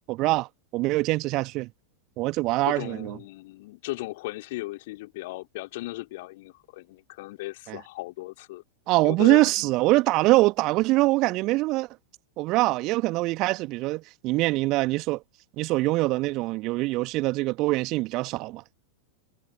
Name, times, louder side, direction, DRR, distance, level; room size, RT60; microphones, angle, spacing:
voice 1, 0.1-1.7 2.2-3.2 7.7-7.8 8.9-11.9 12.4-15.2 15.6-18.8, right 20 dB, 40° right, 1.2 m, -24 dB
voice 2, 2.7-8.6 8.9-9.7, left 20 dB, 50° left, 3.2 m, -37 dB
figure-of-eight pair, 90°, 0 cm